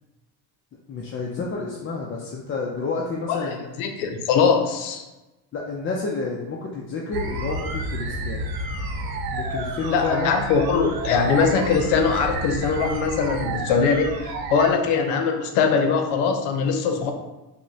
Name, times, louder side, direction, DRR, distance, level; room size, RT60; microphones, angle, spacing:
voice 1, 0.9-3.6 5.5-8.4 9.3-10.3 14.5-14.8, left 4 dB, 30° left, -2 dB, 0.4 m, -29 dB
voice 2, 3.3-5.0 9.9-17.1, left 5 dB, 85° left, 4 dB, 0.7 m, -22 dB
sound 1, 7.1-14.7, right 2 dB, 50° right, 0.6 m, -30 dB
5.3 x 2.1 x 2.7 m, 1.1 s
cardioid pair, 100°, 48 cm